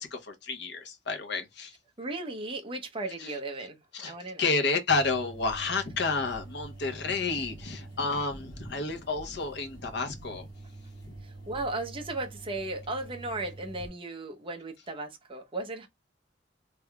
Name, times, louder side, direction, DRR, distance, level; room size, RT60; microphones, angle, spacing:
voice 1, 0.0-1.7 3.2-3.4 3.9-10.5 11.0-11.1, left 4 dB, 65° left, 0.9 m, -30 dB
voice 2, 2.0-3.8 4.1-4.4 11.2-15.9, right 2 dB, 30° right, 0.8 m, -36 dB
sound 1, 4.9-13.9, right 2 dB, 25° left, 1.9 m, -46 dB
3.5 x 3.2 x 2.3 m
head